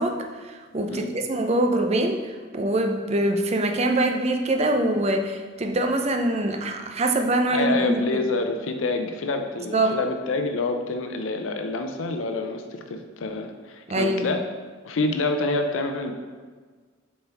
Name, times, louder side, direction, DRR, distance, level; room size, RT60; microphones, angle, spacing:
voice 1, 0.0-8.2 9.7-10.0 13.9-14.3, right 1 dB, 35° right, 4 dB, 0.5 m, -24 dB
voice 2, 7.5-14.4 14.8-16.1, left 3 dB, 90° left, 6 dB, 0.5 m, -27 dB
7.0 x 4.4 x 3.4 m, 1.5 s
head